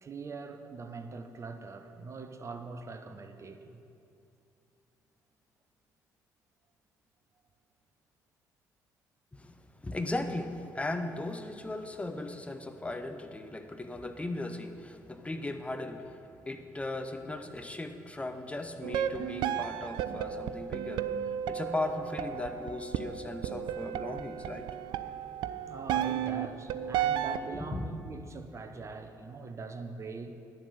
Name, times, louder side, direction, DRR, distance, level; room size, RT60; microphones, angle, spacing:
voice 1, 0.0-3.8 25.7-30.3, right 4 dB, 30° right, 7 dB, 0.9 m, -42 dB
voice 2, 9.3-21.1 21.5-24.7 27.5-27.8, left 2 dB, 15° left, 7 dB, 0.9 m, -37 dB
sound 1, 18.8-27.5, right 10 dB, 55° right, 0.4 m, -33 dB
10.0 x 7.4 x 6.8 m, 2.6 s
figure-of-eight pair, 45°, 9 cm